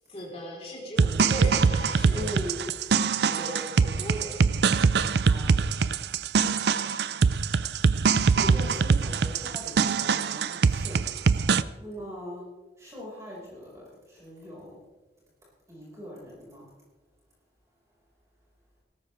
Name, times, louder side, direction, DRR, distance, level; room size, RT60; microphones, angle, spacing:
voice 1, 0.1-2.3 3.4-4.4, right 1 dB, 35° left, -2 dB, 3.9 m, -37 dB
sound 1, 1.0-11.6, right 5 dB, 75° right, 0.5 m, -23 dB
voice 2, 2.1-2.6 3.2-3.5 5.2-5.5 8.3-11.0 11.8-12.4 12.8-14.8 15.7-16.7, equal, 15° right, -6 dB, 5.2 m, -40 dB
17.5 x 14.0 x 3.4 m, 1.2 s
head